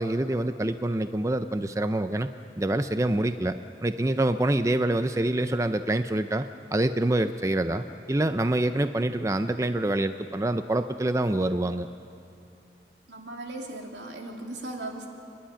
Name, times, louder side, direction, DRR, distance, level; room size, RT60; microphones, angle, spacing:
voice 1, 0.0-2.3 2.6-11.9, right 1 dB, 15° right, 10 dB, 0.5 m, -26 dB
voice 2, 13.1-15.1, right 2 dB, 85° right, 1 dB, 2.9 m, -38 dB
28.5 x 11.5 x 10.0 m, 2.6 s
head